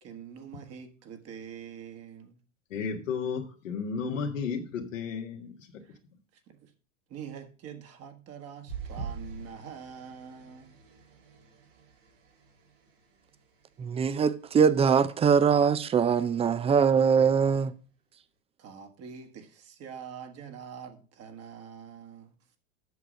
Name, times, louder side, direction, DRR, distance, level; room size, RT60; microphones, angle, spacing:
voice 1, 0.0-2.4 5.8-6.0 6.5-6.7 7.1-10.7 18.6-22.3, right 7 dB, 40° right, 1.5 m, -45 dB
voice 2, 2.7-5.5, left 5 dB, 80° left, 1.7 m, -33 dB
sound 1, 8.7-13.4 13.9-14.2 14.5-14.6, right 5 dB, 75° right, 2.1 m, -44 dB
voice 3, 13.8-17.7, right 6 dB, 15° right, 0.5 m, -22 dB
8.3 x 6.2 x 5.1 m
hypercardioid pair, 95°, 38 cm